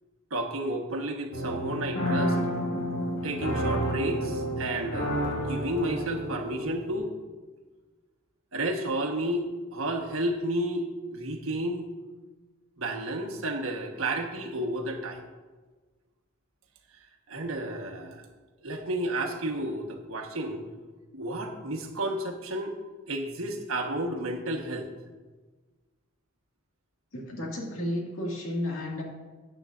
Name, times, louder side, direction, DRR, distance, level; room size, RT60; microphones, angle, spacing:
voice 1, 0.3-2.4 3.2-7.1 8.5-11.9 12.8-15.2 17.3-18.2 18.6-20.6 21.1-22.8 23.1-24.9, right 1 dB, 90° right, 3 dB, 1.3 m, -31 dB
sound 1, 1.3-7.0, equal, 70° left, 3.4 m, -30 dB
voice 2, 27.1-29.0, left 1 dB, 90° left, -1 dB, 2.1 m, -32 dB
13.5 x 8.9 x 2.5 m, 1.3 s
head